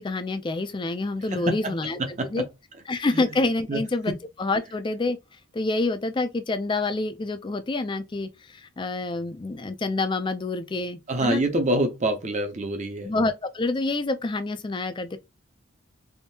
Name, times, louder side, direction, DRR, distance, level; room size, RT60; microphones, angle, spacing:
voice 1, 0.0-2.0 2.3-2.4 2.9-4.1 4.4-5.2 5.5-11.4 13.0-15.2, left 2 dB, 20° left, 0.3 m, -27 dB
voice 2, 1.3-2.4 3.1-3.2 3.7-3.8 4.1-4.2 11.1-13.1, right 1 dB, 35° right, 0.6 m, -26 dB
3.5 x 2.7 x 2.7 m
head